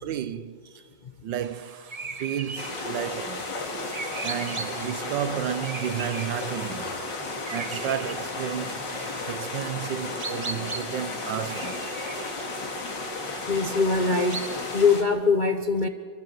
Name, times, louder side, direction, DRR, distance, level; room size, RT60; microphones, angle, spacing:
voice 1, 0.0-0.6 1.2-3.5 4.2-7.0 7.5-11.9, right 10 dB, 80° right, 1.5 m, -32 dB
sound 1, 1.4-15.0, right 4 dB, 35° right, 0.6 m, -40 dB
sound 2, 2.6-15.0, left 3 dB, 75° left, 2.8 m, -34 dB
voice 2, 13.5-15.9, left 4 dB, 45° left, 0.6 m, -23 dB
28.5 x 13.0 x 7.7 m
omnidirectional pair, 2.0 m